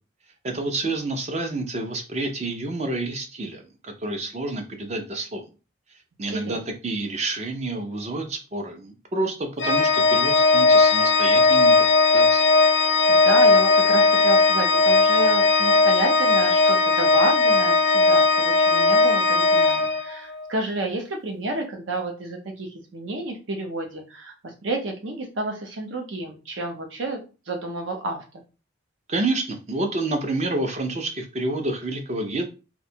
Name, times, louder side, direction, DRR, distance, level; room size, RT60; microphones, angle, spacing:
voice 1, 0.4-5.5 6.2-11.9 12.1-12.5 29.1-32.4, right 2 dB, 35° right, 5 dB, 0.4 m, -29 dB
voice 2, 6.3-6.6 13.1-28.2, right 1 dB, 75° right, 3 dB, 0.7 m, -30 dB
Organ, 9.6-20.5, left 3 dB, 65° left, 0.4 m, -18 dB
2.5 x 2.2 x 2.7 m, 0.32 s
head